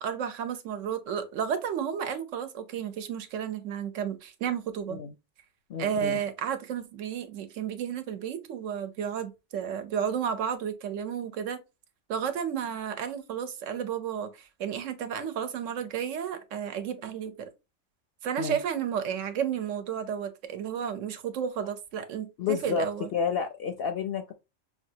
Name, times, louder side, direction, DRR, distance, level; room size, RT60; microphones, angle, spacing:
voice 1, 0.0-5.0 5.8-11.6 12.1-17.5 18.2-23.1, right 8 dB, 75° right, 1.1 m, -32 dB
voice 2, 5.7-6.2 18.4-18.6 22.4-24.3, left 6 dB, 60° left, 0.6 m, -30 dB
5.2 x 2.3 x 2.7 m
omnidirectional pair, 1.3 m